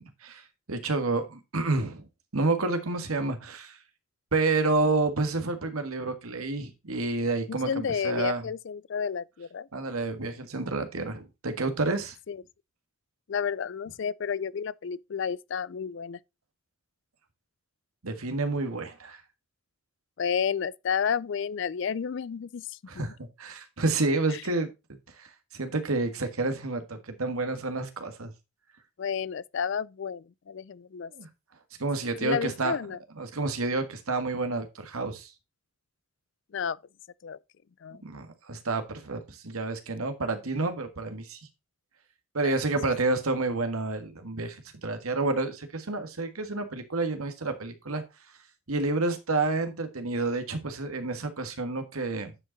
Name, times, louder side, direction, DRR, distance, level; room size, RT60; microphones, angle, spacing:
voice 1, 0.0-2.0 2.3-3.8 4.3-8.5 9.7-12.2 18.0-19.2 22.9-24.7 25.2-25.3 25.5-28.3 31.1-31.3 31.8-32.8 33.2-35.3 38.0-41.4 42.3-48.0 48.7-52.3, right 3 dB, 90° right, 1.6 m, -29 dB
voice 2, 7.7-9.7 12.3-12.4 13.3-16.2 20.2-23.1 24.3-24.4 29.0-31.1 32.2-33.0 36.5-36.8 37.2-37.4 37.8-38.0 42.4-42.5, left 7 dB, 55° left, 0.4 m, -31 dB
9.6 x 5.1 x 4.0 m
head